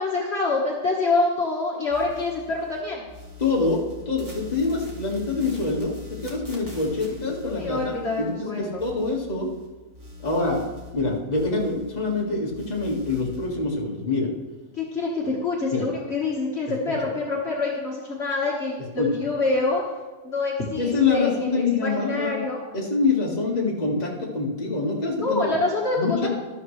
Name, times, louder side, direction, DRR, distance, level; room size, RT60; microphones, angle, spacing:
voice 1, 0.0-3.1 7.5-8.8 14.7-19.8 20.2-22.6 25.2-26.0 26.2-26.3, left 3 dB, 45° left, -4 dB, 1.7 m, -26 dB
sound 1, 1.9-2.8 3.1-9.7 9.9-12.2 12.5-13.5, left 5 dB, 10° right, 2.4 m, -43 dB
voice 2, 3.4-9.5 10.2-10.6 10.9-14.3 15.7-15.9 17.0-17.1 19.0-19.1 20.8-22.4 22.7-25.5 26.0-26.3, left 3 dB, 30° left, -2 dB, 1.8 m, -25 dB
12.5 x 12.0 x 3.2 m, 1.2 s
omnidirectional pair, 1.6 m